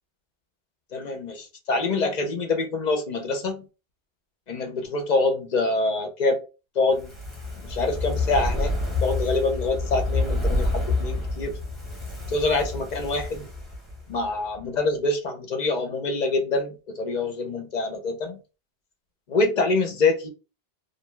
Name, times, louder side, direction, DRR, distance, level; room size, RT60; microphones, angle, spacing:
voice 1, 0.9-3.7 4.5-6.4 6.8-7.1 7.6-8.7 9.0-11.6 12.3-13.5 14.1-18.4 19.3-20.3, left 3 dB, 50° left, 5 dB, 0.6 m, -25 dB
Fire, 6.9-14.3 14.6-14.7, left 2 dB, ahead, 0.9 m, -28 dB
2.6 x 2.2 x 3.0 m, 0.30 s
omnidirectional pair, 1.1 m